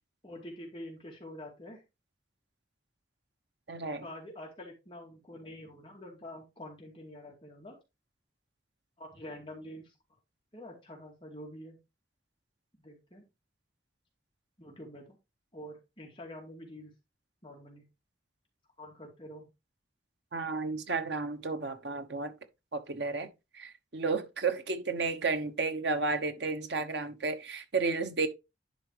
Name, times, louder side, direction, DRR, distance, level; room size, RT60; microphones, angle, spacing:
voice 1, 0.2-1.8 4.0-7.8 9.0-9.9 10.5-11.8 12.8-13.3 14.6-15.2 15.5-16.9 17.4-17.8 18.8-19.5, left 1 dB, 30° left, 2.2 m, -46 dB
voice 2, 3.7-4.1 20.3-22.3 22.7-23.3 23.5-28.3, right 4 dB, 70° right, 1.0 m, -32 dB
10.5 x 4.1 x 3.3 m
head